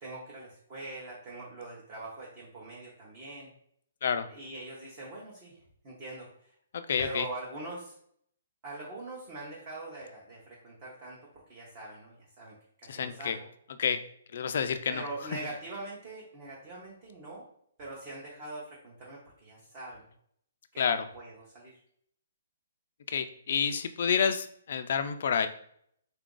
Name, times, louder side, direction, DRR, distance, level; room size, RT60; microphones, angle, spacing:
voice 1, 0.0-3.5 4.3-6.5 7.0-7.9 8.6-13.5 14.9-17.5 17.8-20.0 20.7-21.8, right 2 dB, 25° right, -4 dB, 0.7 m, -43 dB
voice 2, 6.7-7.3 12.9-13.4 13.8-14.0 14.3-15.0 20.8-21.1 23.1-25.5, left 7 dB, 50° left, 9 dB, 0.3 m, -29 dB
3.8 x 2.4 x 3.7 m, 0.66 s
hypercardioid pair, 175°, 0 cm